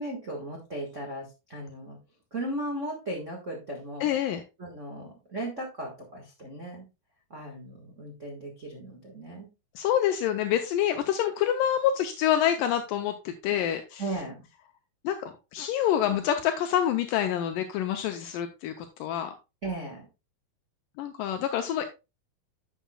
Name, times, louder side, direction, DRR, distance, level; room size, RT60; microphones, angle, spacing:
voice 1, 0.0-2.0 2.3-4.2 4.6-6.8 7.3-9.5 14.0-14.4 19.6-20.1, right 1 dB, 70° right, -2 dB, 0.7 m, -36 dB
voice 2, 4.0-4.4 9.8-14.0 15.0-19.3 21.0-21.8, left 10 dB, 80° left, 6 dB, 2.1 m, -27 dB
11.0 x 7.2 x 2.3 m, 0.27 s
omnidirectional pair, 4.4 m